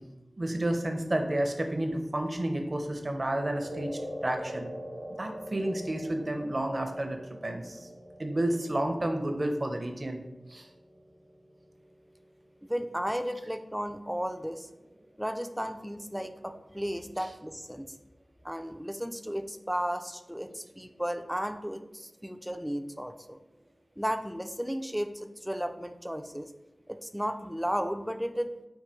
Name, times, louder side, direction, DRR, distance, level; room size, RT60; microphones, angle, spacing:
voice 1, 0.4-3.9 4.2-4.7 5.2-7.2 7.4-7.8 8.2-10.2 10.5-10.6, right 1 dB, 40° right, 5 dB, 0.6 m, -30 dB
sound 1, 3.6-12.1, equal, 85° right, 0.7 m, -43 dB
voice 2, 12.7-14.7 15.2-17.9 18.4-23.4 24.0-26.5 26.9-28.5, equal, 5° right, 8 dB, 0.3 m, -34 dB
4.6 x 2.2 x 4.3 m, 0.97 s
wide cardioid pair, 45°, 0 cm